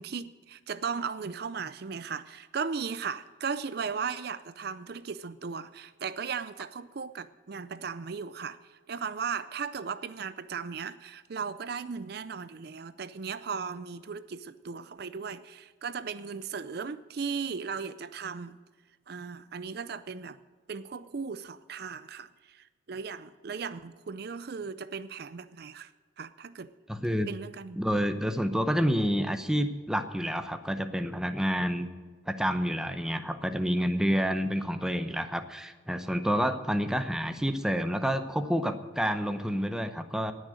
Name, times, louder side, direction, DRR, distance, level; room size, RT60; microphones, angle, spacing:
voice 1, 0.0-8.6 8.9-18.6 19.1-20.4 20.7-25.9 26.2-26.7 27.3-27.8, right 5 dB, 55° right, 14 dB, 0.5 m, -37 dB
voice 2, 26.9-27.3 27.8-31.9 32.3-40.3, equal, 5° right, 8 dB, 0.7 m, -29 dB
18.5 x 6.4 x 8.9 m, 1.4 s
head